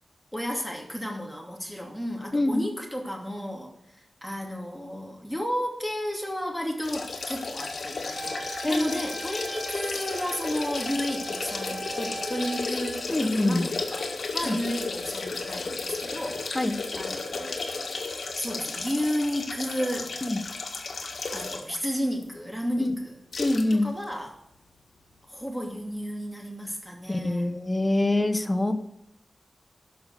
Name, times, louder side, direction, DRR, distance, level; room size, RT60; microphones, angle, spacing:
voice 1, 0.3-17.6 18.4-20.2 21.3-23.2 23.7-24.3 25.3-27.6, equal, ahead, 0 dB, 2.7 m, -33 dB
sound 1, 6.8-21.8 22.2-22.3 23.3-23.7 24.0-24.1, left 3 dB, 75° left, 1.7 m, -33 dB
Wind instrument woodwind instrument, 8.1-13.2, right 3 dB, 45° right, 1.5 m, -40 dB
voice 2, 8.6-9.1 13.1-13.7 14.5-14.6 16.5-16.8 20.2-20.4 22.8-22.9 23.4-23.9 27.1-28.7, left 1 dB, 20° left, 7 dB, 1.1 m, -25 dB
12.5 x 5.8 x 6.6 m, 0.80 s
wide cardioid pair, 115°, 0 cm